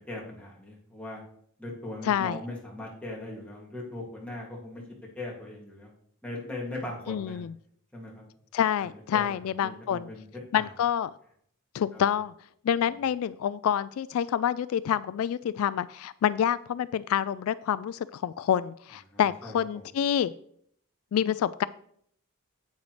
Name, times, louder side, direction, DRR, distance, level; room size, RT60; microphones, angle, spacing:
voice 1, 0.1-1.2 1.6-4.8 5.2-5.9 6.2-7.4 7.9-8.2 8.8-10.7 11.9-12.0 19.1-19.6, left 2 dB, 5° left, -4 dB, 2.2 m, -39 dB
voice 2, 2.0-2.4 7.1-7.5 8.5-10.1 10.5-11.1 11.7-12.3 12.6-20.3 21.1-21.7, left 9 dB, 80° left, 17 dB, 0.3 m, -27 dB
9.0 x 8.4 x 3.2 m, 0.65 s
head